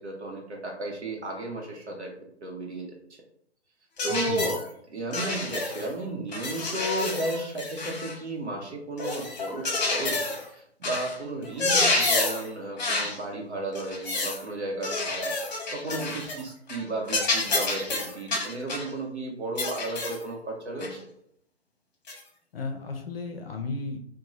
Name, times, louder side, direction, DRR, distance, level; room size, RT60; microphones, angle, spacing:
voice 1, 0.0-2.1 2.4-3.2 4.0-4.6 4.9-10.2 10.5-15.3 15.7-21.0, right 2 dB, 75° right, -1 dB, 0.8 m, -34 dB
sound 1, 4.0-4.6 5.1-5.9 6.3-8.2 9.0-10.4 10.8-11.1 11.4-12.5 12.8-13.2 13.8-14.4 14.8-16.4 16.7-16.8 17.1-18.9 19.6-20.2 20.8-20.9 22.1-22.2, left 3 dB, 40° left, 0.9 m, -28 dB
voice 2, 4.1-4.5 22.5-24.0, left 3 dB, 60° left, 4 dB, 0.5 m, -34 dB
2.6 x 2.2 x 3.0 m, 0.70 s
figure-of-eight pair, 130°, 34 cm